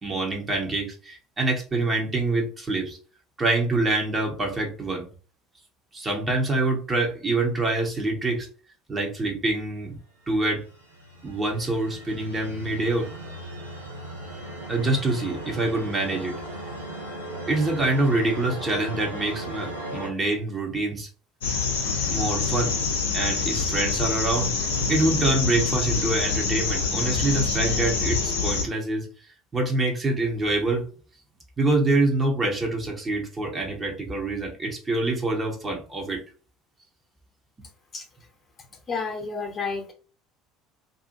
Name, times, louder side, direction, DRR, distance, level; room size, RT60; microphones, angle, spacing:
voice 1, 0.0-3.0 3.4-5.1 5.9-8.5 8.9-10.0 10.3-10.6 11.2-13.1 14.7-16.4 17.5-21.1 22.1-22.8 23.1-24.5 24.9-29.1 29.5-30.9 31.6-36.2, right 2 dB, 20° right, 1 dB, 1.0 m, -25 dB
sound 1, 10.4-20.1, right 1 dB, 85° right, 0.7 m, -37 dB
sound 2, 21.4-28.6, left 4 dB, 70° left, 0.6 m, -26 dB
voice 2, 38.9-39.9, left 4 dB, 35° left, 3 dB, 1.0 m, -30 dB
2.6 x 2.6 x 2.6 m, 0.38 s
figure-of-eight pair, 65°, 0 cm